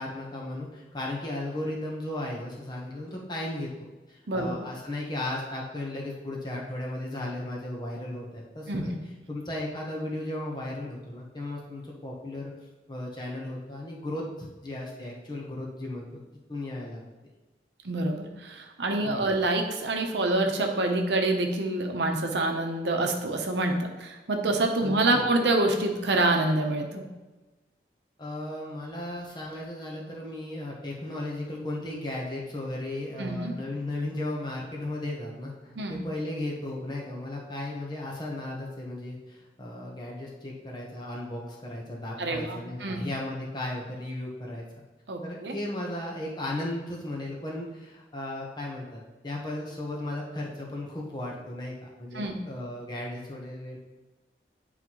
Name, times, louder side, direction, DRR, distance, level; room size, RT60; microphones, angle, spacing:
voice 1, 0.0-8.9 9.3-12.5 12.9-16.2 16.5-17.0 19.0-19.4 24.8-25.2 28.2-44.7 45.2-53.8, left 1 dB, 25° left, -2 dB, 1.1 m, -35 dB
voice 2, 4.3-4.6 8.7-9.0 17.8-27.0 33.2-33.5 35.8-36.0 42.2-43.1 45.1-45.6 52.1-52.4, right 2 dB, 80° right, 3 dB, 0.8 m, -27 dB
9.3 x 4.1 x 3.0 m, 1.1 s
head